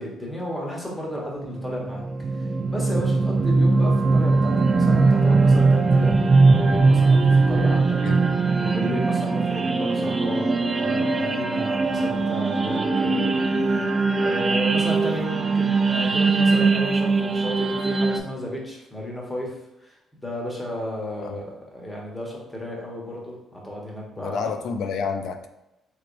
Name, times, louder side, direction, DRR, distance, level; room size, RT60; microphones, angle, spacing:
voice 1, 0.0-2.1 2.3-6.2 6.5-8.0 8.6-19.5 19.8-24.5, equal, 10° left, -2 dB, 1.0 m, -33 dB
sound 1, 1.5-18.2, right 3 dB, 30° right, 0.3 m, -20 dB
voice 2, 24.2-25.5, left 5 dB, 70° left, 7 dB, 0.4 m, -29 dB
3.1 x 3.0 x 2.5 m, 0.92 s
cardioid pair, 95°, 0 cm